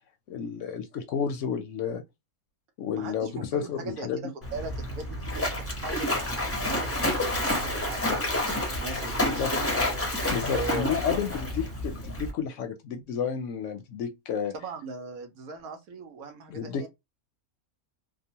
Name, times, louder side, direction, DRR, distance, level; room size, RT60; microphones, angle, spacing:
voice 1, 0.3-2.0 2.8-4.3 9.2-9.5 10.3-14.5 16.5-16.8, left 7 dB, 65° left, 0.8 m, -31 dB
voice 2, 2.9-6.1 6.7-8.1 8.5-9.7 10.3-10.9 14.5-16.9, right 3 dB, 80° right, 1.2 m, -39 dB
Splash splatter, 4.4-12.3, left 1 dB, 15° left, 0.5 m, -29 dB
2.9 x 2.1 x 2.7 m
omnidirectional pair, 1.5 m